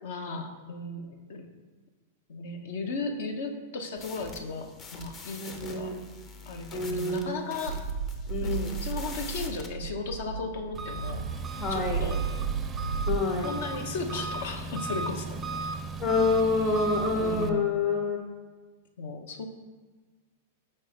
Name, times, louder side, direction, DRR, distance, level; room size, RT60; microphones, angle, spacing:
voice 1, 0.0-1.5 2.3-5.9 6.5-7.8 8.4-11.3 11.7-12.2 13.4-15.4 17.2-17.8 19.0-19.5, left 3 dB, 65° left, 5 dB, 0.7 m, -35 dB
sound 1, 4.0-9.7, left 4 dB, 30° left, 0.7 m, -45 dB
voice 2, 5.4-6.1 6.7-7.5 8.3-8.8 11.6-12.0 13.1-13.5 16.0-18.3, left 3 dB, 45° left, -1 dB, 1.2 m, -27 dB
sound 2, 7.7-13.2, right 6 dB, 85° right, 0.4 m, -33 dB
Engine, 10.7-17.5, right 3 dB, 20° right, 0.4 m, -36 dB
4.3 x 4.3 x 5.1 m, 1.4 s
hypercardioid pair, 105°, 0 cm